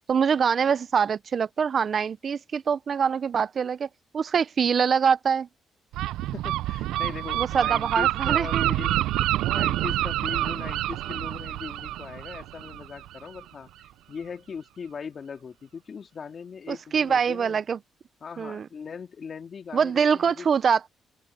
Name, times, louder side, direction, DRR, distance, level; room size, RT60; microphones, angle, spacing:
voice 1, 0.0-5.5 7.4-8.7 16.7-17.8 18.4-18.7 19.7-20.9, right 6 dB, 50° right, 0.6 m, -24 dB
Gull seagull, 5.9-13.4, right 15 dB, 90° right, 0.4 m, -27 dB
voice 2, 6.3-9.1 9.5-13.7 14.1-17.6 18.2-20.5, left 6 dB, 45° left, 2.3 m, -39 dB
open air
cardioid pair, 90°, 0 cm